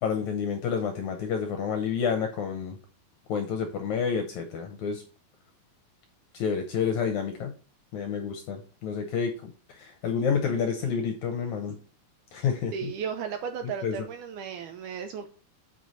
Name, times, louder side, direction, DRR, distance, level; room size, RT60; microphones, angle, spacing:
voice 1, 0.0-2.8 3.3-5.0 6.3-7.5 7.9-11.8 12.3-12.9 13.8-13.9, left 6 dB, 75° left, 5 dB, 1.8 m, -29 dB
voice 2, 12.7-15.3, right 7 dB, 75° right, 6 dB, 1.9 m, -35 dB
7.7 x 5.0 x 4.1 m, 0.37 s
omnidirectional pair, 4.2 m